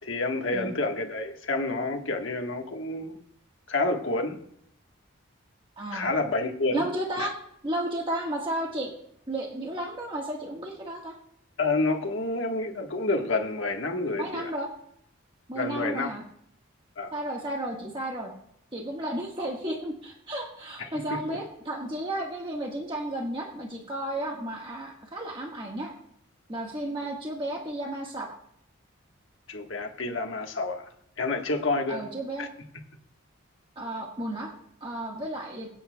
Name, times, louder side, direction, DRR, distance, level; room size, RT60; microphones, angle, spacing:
voice 1, 0.0-3.2 3.7-4.4 5.9-6.9 7.2-7.3 11.6-14.5 15.5-16.1 17.0-17.1 21.1-21.4 29.5-30.9 31.2-32.1 32.4-32.5, left 2 dB, 65° left, 1.3 m, -29 dB
voice 2, 5.8-6.1 6.7-7.3 7.6-8.9 9.3-11.1 14.2-14.7 15.5-16.2 17.1-18.3 18.7-25.9 26.5-28.3 31.9-32.5 33.8-34.5 34.8-35.7, right 1 dB, 25° right, 1.4 m, -33 dB
23.5 x 8.4 x 2.2 m
head